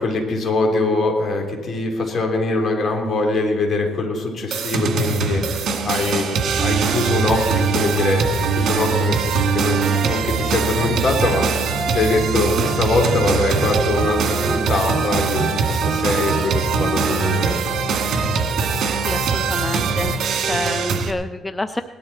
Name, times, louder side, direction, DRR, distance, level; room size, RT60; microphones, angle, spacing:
voice 1, 0.0-11.7 11.9-17.6 20.5-20.7, left 3 dB, 50° left, 2 dB, 3.1 m, -23 dB
sound 1, 4.5-21.1, right 5 dB, 60° right, 1.9 m, -21 dB
voice 2, 19.0-20.1 20.4-21.8, left 2 dB, 15° left, 10 dB, 0.5 m, -28 dB
18.5 x 12.0 x 4.2 m, 1.4 s
cardioid pair, 95°, 0 cm